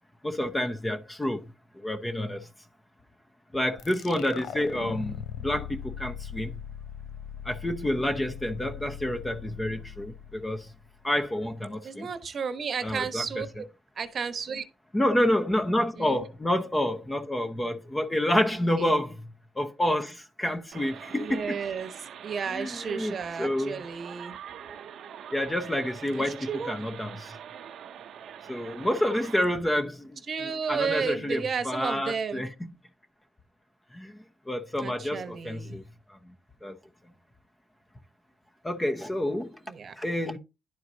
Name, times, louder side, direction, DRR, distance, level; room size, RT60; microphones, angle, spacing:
voice 1, 0.2-2.5 3.5-6.6 7.4-10.7 11.0-12.1 12.8-13.4 14.9-21.6 22.5-23.8 25.3-27.4 28.5-32.7 33.9-35.8 36.1-36.2 36.6-36.7 38.6-39.6 40.0-40.4, left 1 dB, 15° left, 0.9 m, -29 dB
sound 1, 3.8-11.1, left 9 dB, 75° left, 0.5 m, -40 dB
voice 2, 11.8-13.6 14.0-14.6 16.0-16.2 21.1-21.9 22.2-24.4 26.1-26.7 30.3-32.4 34.8-35.8 39.7-39.9, right 6 dB, 50° right, 1.0 m, -33 dB
sound 2, 20.7-29.5, right 9 dB, 70° right, 0.7 m, -44 dB
11.0 x 4.5 x 2.7 m
cardioid pair, 90°, 0 cm